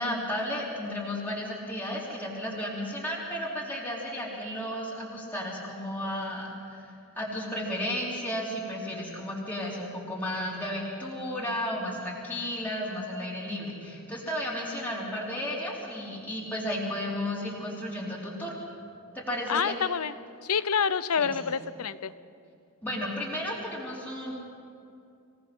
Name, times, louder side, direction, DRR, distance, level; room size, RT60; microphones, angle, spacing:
voice 1, 0.0-18.6 19.1-19.7 21.2-21.3 22.8-24.3, left 1 dB, 10° left, -5 dB, 3.8 m, -33 dB
voice 2, 19.5-20.1 20.4-22.1, left 6 dB, 80° left, 15 dB, 0.7 m, -27 dB
25.5 x 18.0 x 6.2 m, 2.5 s
head